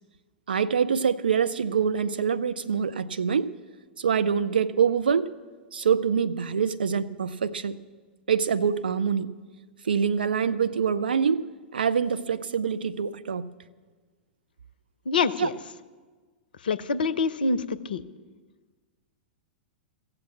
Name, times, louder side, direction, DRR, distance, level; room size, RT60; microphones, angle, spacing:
voice 1, 0.5-3.5 4.0-5.3 5.7-7.8 8.3-9.3 9.8-11.4 11.7-13.5 15.4-15.5, right 6 dB, 70° right, 11 dB, 0.5 m, -25 dB
voice 2, 15.1-15.6 16.6-18.0, left 4 dB, 65° left, 16 dB, 0.6 m, -26 dB
15.5 x 7.9 x 7.2 m, 1.4 s
figure-of-eight pair, 100°, 5 cm